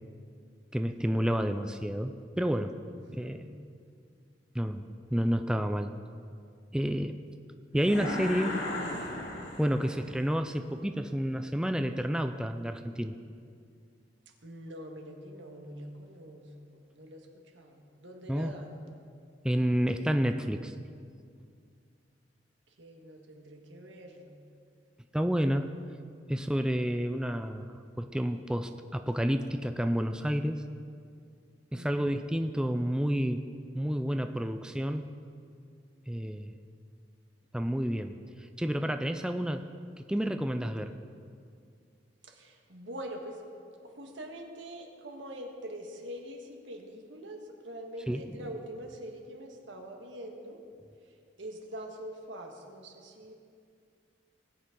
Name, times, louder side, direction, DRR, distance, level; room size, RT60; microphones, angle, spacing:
voice 1, 0.7-2.8 3.1-3.4 4.5-5.9 6.7-7.2 7.7-8.6 9.6-13.1 18.3-18.5 19.4-20.7 25.1-25.7 26.3-30.6 31.7-33.4 33.7-35.1 36.1-36.5 37.5-38.1 38.6-39.7 40.0-41.0 48.1-48.2, equal, 5° right, 7 dB, 0.4 m, -30 dB
voice 2, 3.0-3.5 14.4-17.3 17.5-18.7 22.8-24.4 31.7-32.2 42.2-43.4 43.8-50.6 51.4-53.3, right 1 dB, 85° right, 2 dB, 1.6 m, -44 dB
sound 1, 7.8-10.1, left 1 dB, 65° left, 2.2 m, -36 dB
19.5 x 8.5 x 3.8 m, 2.3 s
head